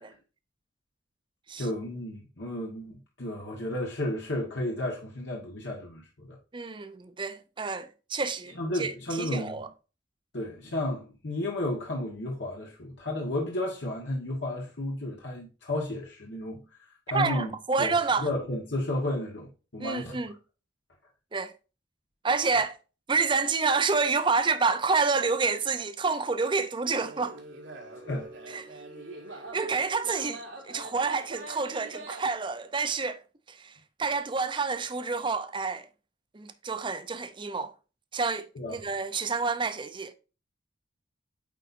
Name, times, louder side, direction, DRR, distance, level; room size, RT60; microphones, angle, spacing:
voice 1, 1.6-6.4 8.5-9.6 10.3-16.6 17.1-17.5 17.8-20.2 22.5-22.6 28.0-28.3 38.5-38.8, left 1 dB, 65° left, 1.5 m, -33 dB
voice 2, 6.5-9.7 17.1-18.3 19.8-20.3 21.3-21.5 22.2-22.8 23.1-27.4 28.5-28.7 29.5-33.2 33.5-35.9 36.3-37.7 38.1-40.1, right 4 dB, 25° right, 0.6 m, -28 dB
sound 1, 27.0-32.3, right 2 dB, 70° right, 1.8 m, -43 dB
9.0 x 4.0 x 2.6 m
head